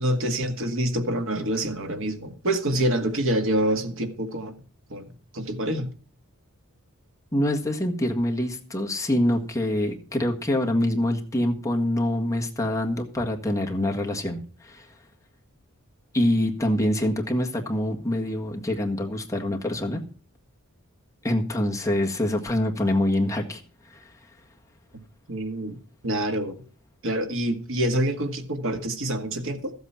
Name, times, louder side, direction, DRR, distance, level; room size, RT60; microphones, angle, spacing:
voice 1, 0.0-4.5 4.9-5.0 5.3-5.9 25.3-25.8 26.0-26.6 27.0-29.7, right 1 dB, 65° right, 2.0 m, -26 dB
voice 2, 7.3-14.9 16.1-20.0 21.2-23.6 23.9-24.1, left 1 dB, 15° left, 1.7 m, -25 dB
14.5 x 8.1 x 5.8 m
head